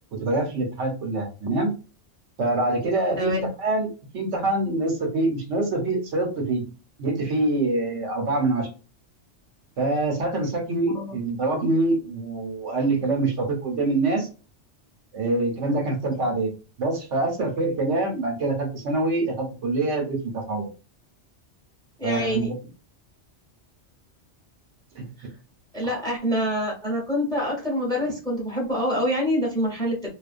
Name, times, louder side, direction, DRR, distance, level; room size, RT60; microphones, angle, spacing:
voice 1, 0.1-1.7 2.4-6.6 7.0-8.7 9.8-14.3 15.1-16.5 16.8-20.7 22.0-22.6 25.0-25.1 25.8-25.9, right 2 dB, 80° right, 2 dB, 1.1 m, -25 dB
voice 2, 3.2-3.5 10.8-11.1 22.0-22.5 25.7-30.1, equal, 5° left, -2 dB, 0.8 m, -26 dB
2.3 x 2.2 x 2.4 m, 0.33 s
omnidirectional pair, 1.2 m